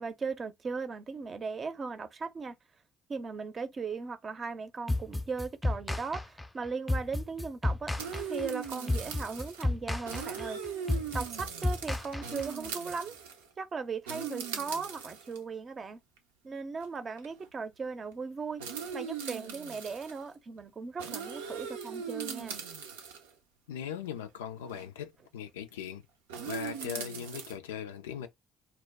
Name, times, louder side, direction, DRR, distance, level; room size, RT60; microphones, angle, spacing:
voice 1, 0.0-2.6 3.1-7.9 8.3-10.6 11.1-13.1 13.6-16.0 16.4-18.6 18.9-22.6, right 4 dB, 40° right, 0.6 m, -38 dB
sound 1, 4.9-12.7, left 2 dB, 15° left, 0.4 m, -32 dB
sound 2, 8.0-9.6 10.0-13.5 14.1-15.4 16.2-16.3 16.8-16.9 17.2-17.4 18.6-20.2 21.0-23.3 24.7-24.8 26.3-27.5, right 7 dB, 90° right, 0.5 m, -39 dB
voice 2, 23.7-26.0 26.5-28.3, left 9 dB, 90° left, 0.3 m, -39 dB
2.2 x 2.1 x 3.4 m
hypercardioid pair, 55°, 0 cm